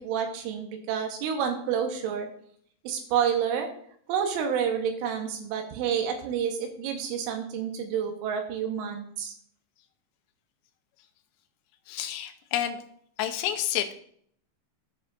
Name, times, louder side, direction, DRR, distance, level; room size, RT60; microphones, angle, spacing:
voice 1, 0.0-2.3 2.8-3.7 4.1-9.3, right 7 dB, 75° right, 4 dB, 3.4 m, -29 dB
voice 2, 11.9-12.8 13.2-13.9, left 11 dB, 80° left, 6 dB, 3.3 m, -29 dB
14.5 x 5.0 x 2.5 m, 0.63 s
omnidirectional pair, 6.0 m